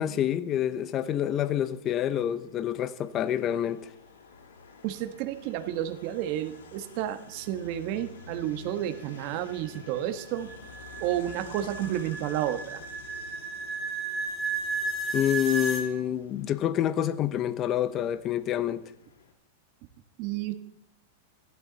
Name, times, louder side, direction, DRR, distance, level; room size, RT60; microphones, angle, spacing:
voice 1, 0.0-3.9 15.1-18.8, left 10 dB, 30° left, 0.8 m, -27 dB
hastings traffic, 0.9-19.3, left 5 dB, 90° left, 3.5 m, -50 dB
voice 2, 4.8-10.5 11.0-12.8 20.2-20.5, right 12 dB, 45° right, 1.4 m, -31 dB
sound 1, 8.7-15.9, right 3 dB, 10° right, 2.2 m, -34 dB
15.5 x 12.0 x 4.1 m
supercardioid pair, 145°, 0 cm